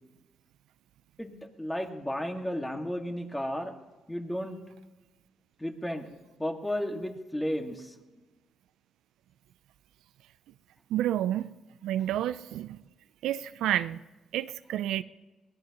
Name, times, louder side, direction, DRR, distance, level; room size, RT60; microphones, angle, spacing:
voice 1, 1.2-3.7 4.1-4.6 5.6-6.1 6.4-8.0, equal, 10° left, 3 dB, 1.9 m, -33 dB
voice 2, 10.9-11.5 11.8-12.8 13.2-14.0 14.3-15.0, right 12 dB, 85° right, 14 dB, 0.4 m, -29 dB
22.0 x 18.5 x 3.0 m, 1.2 s
cardioid pair, 90°, 0 cm